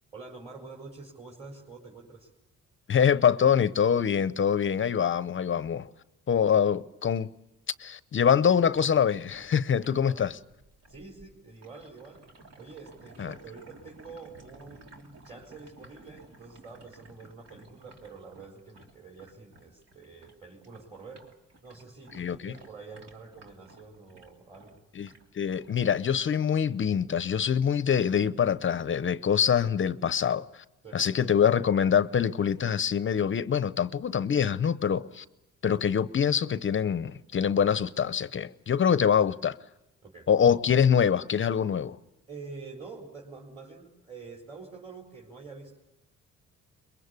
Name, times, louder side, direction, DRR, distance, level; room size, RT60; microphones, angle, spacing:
voice 1, 0.1-2.3 10.0-10.3 10.9-12.3 12.6-21.2 21.6-24.8 30.8-31.0 40.0-40.3 42.3-45.8, right 4 dB, 20° right, 4.4 m, -47 dB
voice 2, 2.9-5.9 6.3-7.3 7.8-10.3 13.2-13.3 22.2-22.5 25.0-30.6 30.9-35.2 35.6-39.6 40.3-42.0, left 8 dB, 40° left, 0.8 m, -25 dB
Gurgling Sound - Long Wet Gross, 8.4-20.4 20.6-25.8 26.1-26.5 27.1-27.2, right 2 dB, 55° right, 3.3 m, -55 dB
23.0 x 22.0 x 8.3 m
cardioid pair, 90°, 30 cm